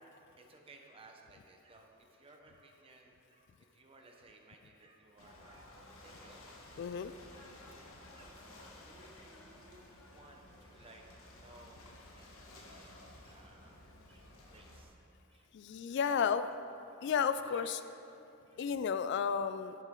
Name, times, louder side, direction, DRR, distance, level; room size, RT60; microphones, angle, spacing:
voice 1, 0.0-6.6 7.0-7.4 8.1-15.0 15.3-15.5 16.0-16.5 17.0-17.9 18.1-18.7, right 2 dB, 25° right, 1 dB, 1.0 m, -60 dB
Ocean / Boat Water vehicle, 5.2-14.8, left 1 dB, 75° left, 1.3 m, -55 dB
voice 2, 6.8-7.1 15.5-16.4 17.0-17.8 18.6-19.8, left 7 dB, 55° left, 12 dB, 0.3 m, -32 dB
10.0 x 9.8 x 3.8 m, 2.7 s
head